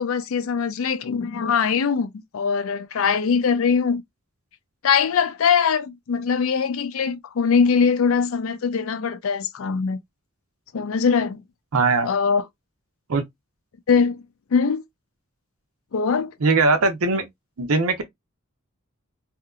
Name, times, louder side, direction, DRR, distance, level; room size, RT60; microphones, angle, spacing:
voice 1, 0.0-4.0 4.8-10.0 10.7-11.4 12.1-12.4 13.9-14.2 14.5-14.8 15.9-16.3, left 6 dB, 70° left, 0.4 m, -22 dB
voice 2, 11.7-12.1 13.1-13.2 16.4-17.3 17.6-18.0, right 3 dB, 85° right, 0.7 m, -20 dB
2.8 x 2.5 x 2.3 m
head